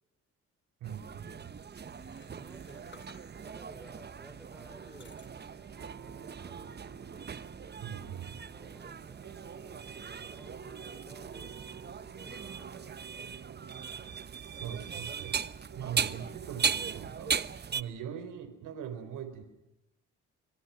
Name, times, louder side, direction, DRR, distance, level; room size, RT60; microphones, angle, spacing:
sound 1, 0.8-17.8, right 6 dB, 35° right, 1.0 m, -38 dB
voice 1, 0.8-1.5 7.8-8.4 14.5-15.4 15.7-17.4 17.7-19.4, right 8 dB, 85° right, 10 dB, 4.5 m, -41 dB
sound 2, 1.9-3.6 4.2-6.0 6.4-7.0, left 4 dB, 40° left, 3.4 m, -60 dB
voice 2, 2.3-3.1 3.4-5.2 5.7-6.7 8.5-9.2 9.8-11.5 12.1-13.0 13.8-14.6, equal, ahead, 8 dB, 5.7 m, -56 dB
sound 3, 2.4-17.1, right 7 dB, 60° right, 4.1 m, -51 dB
26.5 x 25.5 x 5.9 m, 0.89 s
cardioid pair, 90°, 30 cm